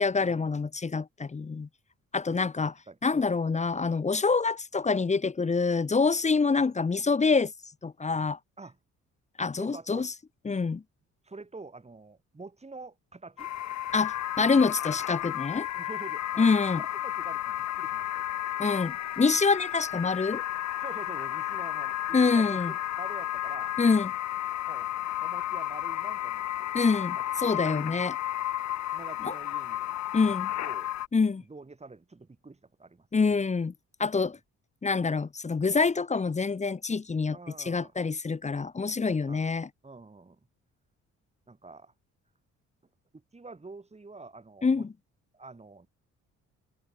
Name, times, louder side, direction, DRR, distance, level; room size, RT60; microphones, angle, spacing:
voice 1, 0.0-1.7 2.1-2.7 3.0-7.5 7.8-8.4 9.4-10.1 10.4-10.8 13.9-15.7 16.4-16.8 18.6-20.4 22.1-22.7 23.8-24.1 26.7-27.2 27.4-28.1 29.2-29.3 30.1-30.5 31.1-31.4 33.1-33.7 34.0-34.4 34.8-37.4 37.6-39.7 44.6-44.9, left 4 dB, 25° left, 0.9 m, -26 dB
voice 2, 9.5-10.1 11.2-13.5 15.7-16.5 16.8-18.3 20.8-23.8 24.7-24.9 25.2-28.1 28.9-30.0 30.2-30.3 30.6-30.9 31.4-33.3 37.3-37.9 39.3-39.5 39.8-40.4 41.5-41.9 43.1-44.9 45.3-45.9, right 3 dB, 20° right, 5.5 m, -47 dB
sound 1, 13.4-31.1, left 13 dB, 65° left, 0.9 m, -33 dB
cardioid pair, 90°, 30 cm